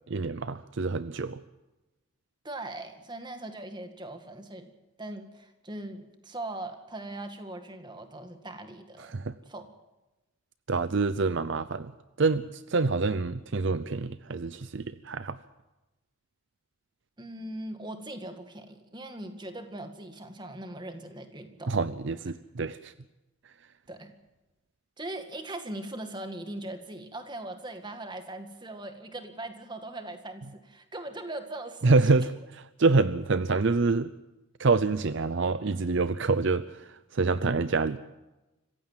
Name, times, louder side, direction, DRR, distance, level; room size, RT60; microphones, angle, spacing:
voice 1, 0.1-1.4 9.0-9.4 10.7-11.9 12.2-15.4 21.7-22.9 31.8-32.3 32.8-34.1 34.6-38.0, right 3 dB, 55° right, 14 dB, 0.6 m, -26 dB
voice 2, 2.4-4.7 5.0-9.2 9.5-9.7 17.2-21.7 23.9-24.1 25.0-32.3, right 1 dB, 20° right, 7 dB, 1.9 m, -40 dB
26.0 x 15.5 x 7.4 m, 1.0 s
head